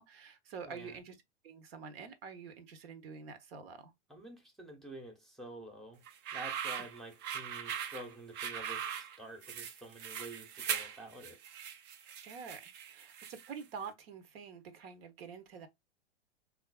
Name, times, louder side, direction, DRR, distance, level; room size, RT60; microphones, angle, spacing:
voice 1, 0.0-3.9 12.2-15.7, right 6 dB, 60° right, 0.8 m, -47 dB
voice 2, 0.6-1.0 4.1-6.0 6.3-11.4, right 1 dB, ahead, 0.7 m, -49 dB
sound 1, 6.1-13.6, right 8 dB, 30° right, 0.5 m, -40 dB
3.9 x 2.4 x 2.2 m
hypercardioid pair, 105°, 34 cm